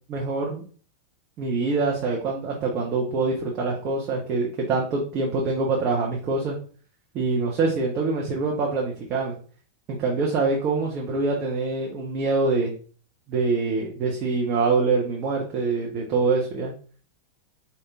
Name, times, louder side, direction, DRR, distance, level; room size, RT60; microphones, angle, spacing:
voice 1, 0.1-0.6 1.4-6.6 7.1-9.3 9.9-12.7 13.3-16.7, right 3 dB, 35° right, -2 dB, 1.1 m, -25 dB
5.2 x 2.9 x 3.6 m, 0.41 s
figure-of-eight pair, 90°, 0 cm